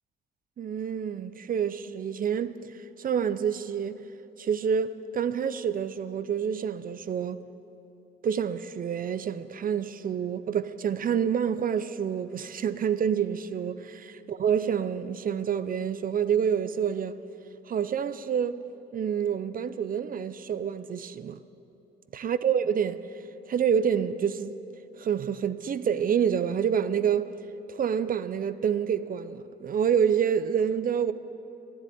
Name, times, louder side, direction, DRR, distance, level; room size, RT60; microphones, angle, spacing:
voice 1, 0.6-2.5 3.0-4.0 4.4-7.4 8.2-17.2 17.7-18.6 18.9-21.4 22.1-23.0 23.5-24.5 25.0-27.3 27.7-31.1, right 8 dB, 45° right, 0.6 m, -27 dB
12.0 x 10.5 x 9.4 m
cardioid pair, 90°, 20 cm